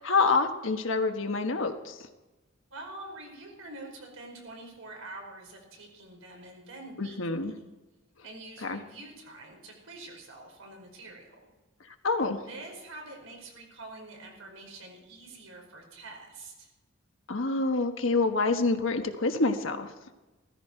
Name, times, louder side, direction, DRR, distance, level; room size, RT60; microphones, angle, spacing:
voice 1, 0.0-2.0 7.0-7.5 8.6-8.8 12.0-12.4 17.3-19.9, left 3 dB, 70° left, 6 dB, 1.3 m, -27 dB
voice 2, 2.7-7.2 7.4-7.6 8.2-11.5 12.5-16.7, right 2 dB, 90° right, 1 dB, 4.8 m, -46 dB
16.0 x 14.5 x 4.5 m, 1.1 s
head